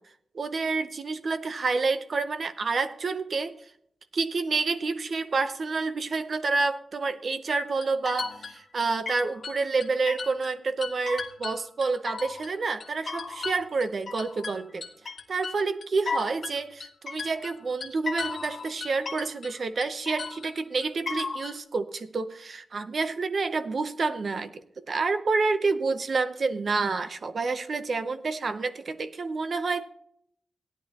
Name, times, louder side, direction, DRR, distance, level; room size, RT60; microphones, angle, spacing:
voice 1, 0.3-3.5 4.1-14.8 15.3-29.9, right 4 dB, 45° right, 11 dB, 0.7 m, -28 dB
sound 1, 7.5-10.5 10.8-12.5 12.8-19.6 19.8-21.6, left 4 dB, 45° left, 1.5 m, -36 dB
17.0 x 10.5 x 2.9 m, 0.69 s
wide cardioid pair, 155°, 0 cm